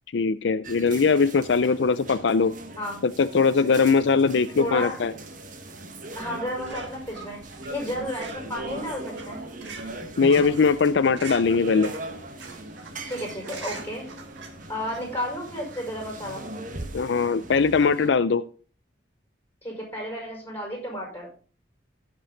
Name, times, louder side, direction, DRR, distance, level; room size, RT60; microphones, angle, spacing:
voice 1, 0.1-2.5 3.0-5.1 10.2-11.9 16.9-18.4, left 5 dB, 70° left, 13 dB, 0.5 m, -21 dB
sound 1, 0.6-18.1, right 1 dB, 45° right, 1.4 m, -39 dB
voice 2, 4.6-5.0 6.2-7.4 7.7-9.4 13.1-14.1 14.7-16.5 19.6-21.3, equal, 10° left, -1 dB, 5.4 m, -32 dB
sound 2, 6.1-15.9, right 4 dB, 75° right, 2.2 m, -44 dB
16.0 x 6.2 x 4.0 m, 0.39 s
head